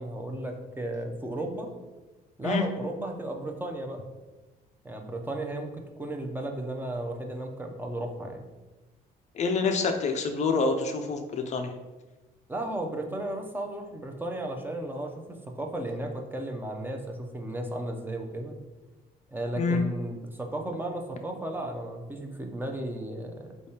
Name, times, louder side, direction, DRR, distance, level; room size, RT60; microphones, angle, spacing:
voice 1, 0.0-1.7 2.4-4.0 4.8-8.4 12.5-18.5 19.3-23.5, right 1 dB, 10° right, 3 dB, 0.5 m, -34 dB
voice 2, 9.3-11.7 19.5-19.8, left 4 dB, 45° left, 5 dB, 0.4 m, -27 dB
4.2 x 3.4 x 2.8 m, 1.2 s
cardioid pair, 110°, 17 cm